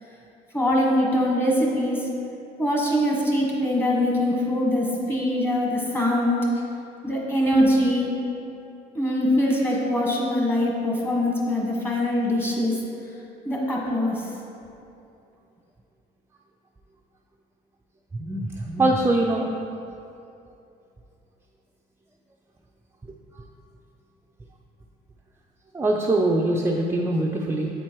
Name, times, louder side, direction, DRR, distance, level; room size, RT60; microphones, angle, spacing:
voice 1, 0.5-2.1 2.6-6.4 7.0-8.1 8.9-12.8 13.4-14.2, left 1 dB, 15° left, -3 dB, 1.5 m, -23 dB
voice 2, 18.1-19.5 23.3-23.4 25.7-27.7, right 2 dB, 15° right, -1 dB, 0.4 m, -23 dB
8.0 x 4.4 x 4.5 m, 2.8 s
cardioid pair, 110°, 17 cm